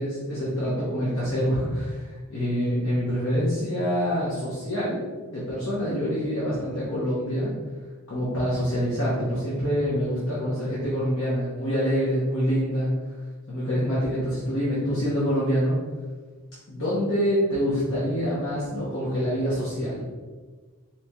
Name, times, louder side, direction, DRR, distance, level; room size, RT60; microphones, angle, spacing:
voice 1, 0.0-5.0 5.3-7.5 8.1-12.9 13.5-15.8 16.7-20.0, equal, 60° left, -9 dB, 0.8 m, -26 dB
4.1 x 3.0 x 2.2 m, 1.4 s
head